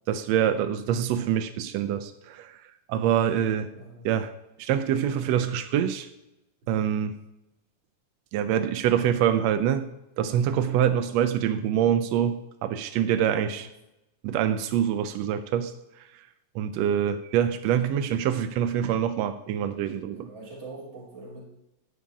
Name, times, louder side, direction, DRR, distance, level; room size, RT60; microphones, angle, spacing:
voice 1, 0.1-2.6 2.9-3.7 4.0-4.3 4.6-6.1 6.7-7.1 8.3-9.9 10.2-13.7 14.2-15.7 16.5-20.3, right 9 dB, 85° right, 9 dB, 1.5 m, -25 dB
voice 2, 3.7-4.1 13.3-13.7 20.1-21.5, right 2 dB, 40° right, -3 dB, 3.5 m, -43 dB
12.0 x 4.9 x 8.5 m, 0.91 s
omnidirectional pair, 3.6 m